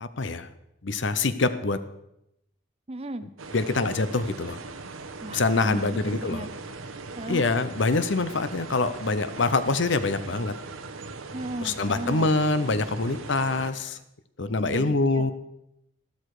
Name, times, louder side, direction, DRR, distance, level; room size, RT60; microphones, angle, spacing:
voice 1, 0.0-0.5 0.8-1.8 3.5-4.6 5.3-6.5 7.3-10.6 11.6-14.0 14.4-15.3, left 3 dB, 60° left, 12 dB, 0.8 m, -25 dB
voice 2, 2.9-3.3 5.2-6.5 7.2-7.4 11.3-12.3 14.4-15.3, right 2 dB, 30° right, 12 dB, 0.6 m, -35 dB
sound 1, 3.4-13.7, right 3 dB, 85° right, 1.1 m, -40 dB
13.0 x 12.5 x 4.9 m, 0.81 s
head